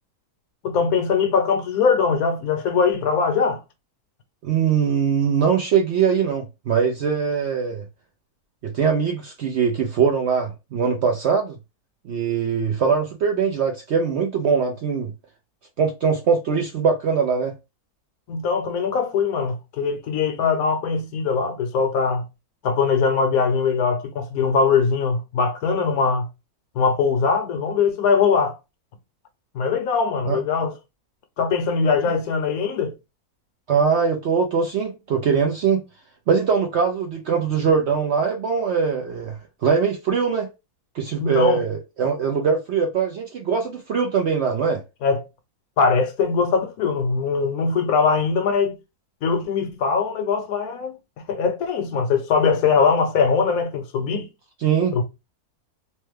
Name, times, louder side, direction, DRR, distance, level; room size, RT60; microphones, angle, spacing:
voice 1, 0.6-3.6 18.3-22.2 22.6-26.3 26.8-28.5 29.5-30.7 31.4-32.9 41.2-41.6 45.0-45.2 45.8-48.7 49.2-51.0 51.3-54.3 54.9-55.0, left 5 dB, 70° left, 1.1 m, -21 dB
voice 2, 4.4-7.8 8.6-11.6 12.0-15.1 15.8-17.5 30.3-30.4 33.7-35.8 36.3-40.5 40.9-44.8 54.6-55.0, right 6 dB, 65° right, 0.6 m, -22 dB
3.1 x 2.2 x 3.1 m
omnidirectional pair, 1.6 m